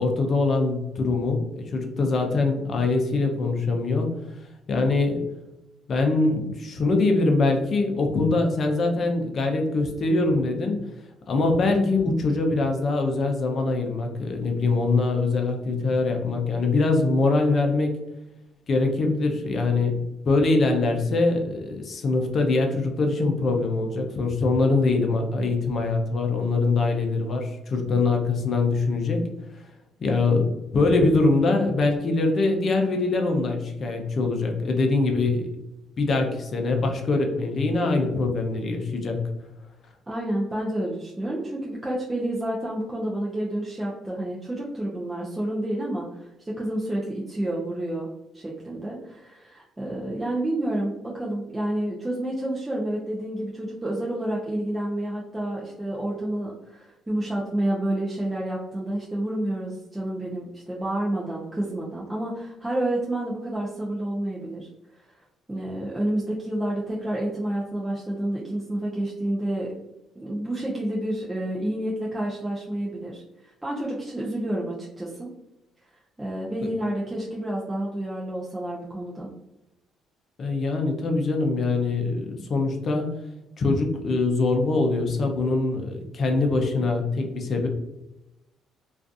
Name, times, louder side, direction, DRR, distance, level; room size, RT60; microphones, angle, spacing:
voice 1, 0.0-4.1 4.7-5.2 5.9-10.8 11.3-17.9 18.7-29.3 30.0-35.5 36.0-39.2 80.4-83.1 83.6-87.7, left 3 dB, 50° left, 3 dB, 0.5 m, -23 dB
voice 2, 40.1-48.1 48.3-64.7 65.5-69.7 70.2-75.3 76.2-79.3, right 1 dB, 15° right, -5 dB, 0.5 m, -29 dB
2.4 x 2.4 x 2.4 m, 0.95 s
cardioid pair, 95°, 0 cm